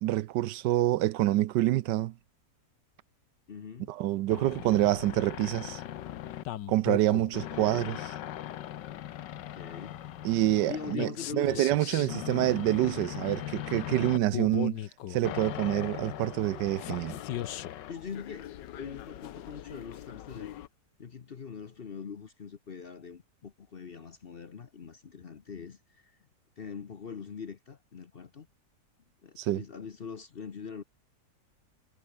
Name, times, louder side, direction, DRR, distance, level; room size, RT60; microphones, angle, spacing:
voice 1, 0.0-2.1 3.9-5.8 6.7-8.0 10.2-14.8 15.1-17.2 29.4-29.6, right 15 dB, 85° right, 1.3 m, -27 dB
voice 2, 3.5-3.9 7.3-7.9 9.3-10.0 10.7-11.6 11.9-12.6 17.1-17.2 17.9-20.5 21.0-26.2 26.6-28.5 29.2-30.8, left 6 dB, 45° left, 0.9 m, -43 dB
sound 1, 4.3-20.7, left 12 dB, 90° left, 1.5 m, -39 dB
omnidirectional pair, 1.9 m